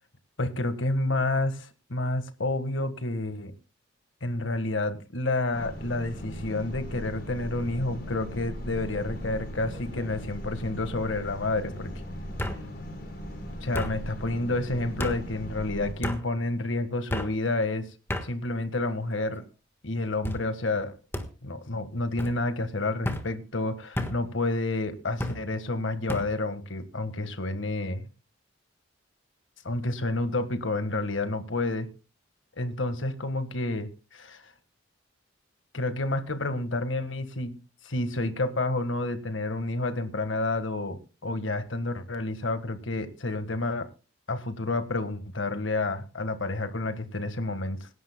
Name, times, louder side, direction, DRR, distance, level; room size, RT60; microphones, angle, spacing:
voice 1, 0.4-3.5 4.2-11.9 13.6-17.9 18.2-19.4 19.8-21.0 21.4-28.1 29.6-31.9 32.6-34.5 35.7-37.6 37.8-43.9 44.3-47.9, left 2 dB, 75° left, 10 dB, 1.6 m, -29 dB
sound 1, 5.5-15.9, equal, 50° left, 5.1 m, -38 dB
sound 2, 8.9-9.3 9.7-10.3 11.3-11.4 12.4-12.6 13.7-13.9 15.0-15.2 16.0-16.2 17.1-17.3 18.1-18.3 19.0-19.5 20.2-20.4 21.1-21.3 22.2-22.4 23.0-23.3 24.0-24.2 25.2-25.4 26.1-26.3, left 1 dB, 10° left, 1.4 m, -32 dB
25.5 x 11.0 x 2.2 m, 0.32 s
head